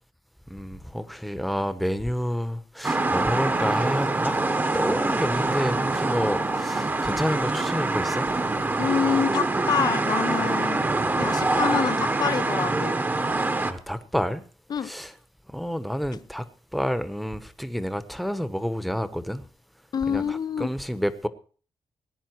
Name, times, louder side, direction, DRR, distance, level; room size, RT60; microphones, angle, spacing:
voice 1, 0.5-4.4 4.7-8.3 13.6-14.4 14.8-15.1 15.5-16.5 16.7-19.4 20.1-21.3, equal, ahead, 1.1 m, -29 dB
sound 1, 2.8-13.7, right 2 dB, 20° right, 1.2 m, -25 dB
voice 2, 8.8-13.0 14.7-14.9 19.9-20.7, left 7 dB, 50° left, 0.7 m, -27 dB
18.5 x 10.0 x 4.7 m
wide cardioid pair, 120°, 9 cm